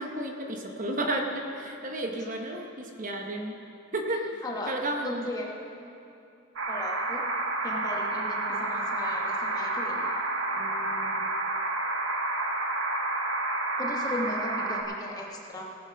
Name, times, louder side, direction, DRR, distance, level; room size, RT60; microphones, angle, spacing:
voice 1, 0.0-3.6 3.9-4.2 4.7-5.2 8.5-8.6, right 1 dB, 40° right, 2 dB, 0.9 m, -32 dB
voice 2, 4.4-4.8 5.0-5.5 6.7-7.2 7.6-10.1 10.5-11.3 13.8-15.6, left 1 dB, 20° left, 0 dB, 1.1 m, -37 dB
sound 1, 6.6-14.8, right 2 dB, 70° right, 1.2 m, -30 dB
18.0 x 6.8 x 5.8 m, 2.7 s
head